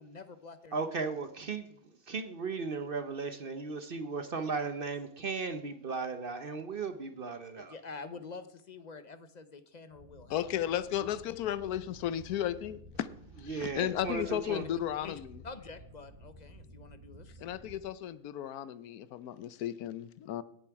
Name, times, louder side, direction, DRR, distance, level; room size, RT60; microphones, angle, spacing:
voice 1, 0.0-0.9 7.4-10.4 10.8-10.9 14.1-15.1 15.4-17.4, left 4 dB, 40° left, 11 dB, 0.7 m, -48 dB
voice 2, 0.7-1.8 2.1-7.7 13.5-14.6, right 4 dB, 45° right, 9 dB, 0.8 m, -36 dB
sound 1, 9.9-17.8, equal, 75° right, 3.6 m, -53 dB
voice 3, 10.3-13.1 13.4-15.4 17.4-20.4, left 11 dB, 90° left, 15 dB, 1.2 m, -34 dB
17.5 x 7.2 x 4.7 m, 0.71 s
omnidirectional pair, 1.5 m